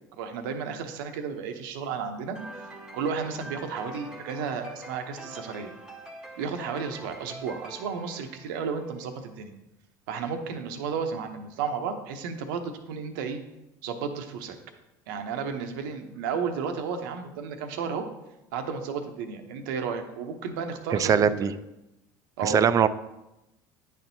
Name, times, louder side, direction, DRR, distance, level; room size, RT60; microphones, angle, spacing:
voice 1, 0.2-2.4 2.9-5.7 6.4-9.5 10.1-13.4 13.8-14.6 15.1-18.0 18.5-21.5 22.4-22.6, right 6 dB, 80° right, 6 dB, 0.7 m, -33 dB
sound 1, 2.4-9.0, right 1 dB, 5° right, 1.0 m, -44 dB
voice 2, 21.0-21.5 22.4-22.9, right 7 dB, 30° right, 13 dB, 0.3 m, -21 dB
9.7 x 4.3 x 2.7 m, 0.92 s
supercardioid pair, 95°, 11 cm